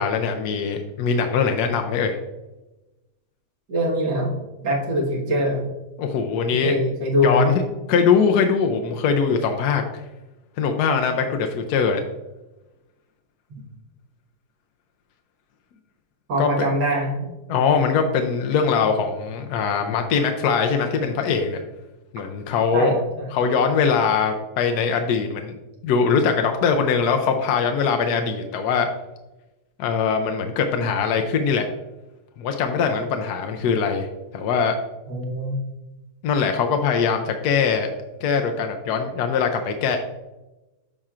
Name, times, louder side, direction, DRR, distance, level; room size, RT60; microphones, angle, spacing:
voice 1, 0.0-2.2 6.0-6.7 7.2-7.6 7.9-9.8 10.6-12.0 16.4-16.7 17.5-21.6 22.1-22.9 23.3-25.6 25.8-28.9 29.8-31.7 32.4-34.1 34.3-34.7 36.2-37.9 38.2-40.0, left 6 dB, 75° left, 4 dB, 1.1 m, -22 dB
voice 2, 3.7-4.4 4.6-5.7 6.5-7.5 16.3-17.3 22.7-23.3 35.1-35.6, equal, 90° right, -2 dB, 2.1 m, -23 dB
12.5 x 4.3 x 2.4 m, 1.0 s
omnidirectional pair, 1.7 m